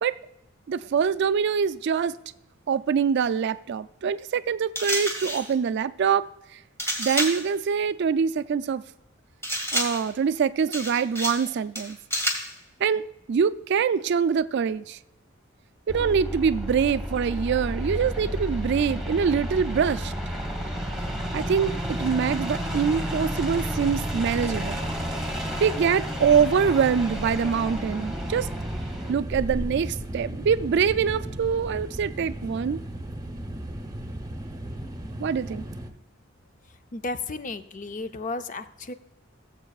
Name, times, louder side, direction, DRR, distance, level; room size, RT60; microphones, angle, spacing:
voice 1, 0.7-2.2 2.7-6.3 7.0-8.8 9.7-12.0 12.8-15.0 15.9-20.1 21.3-24.8 25.6-28.5 29.1-32.8 35.2-35.6, right 6 dB, 60° right, 0.3 m, -24 dB
sound 1, 4.7-5.5 6.8-7.5 9.4-10.1 10.7-11.5 11.7-12.5, equal, 15° left, 1.9 m, -29 dB
sound 2, 15.9-29.1, equal, 5° right, 1.4 m, -31 dB
sound 3, 26.2-35.9, right 1 dB, 20° right, 0.8 m, -35 dB
voice 2, 36.9-38.9, left 3 dB, 40° left, 0.5 m, -33 dB
18.0 x 7.4 x 2.4 m
head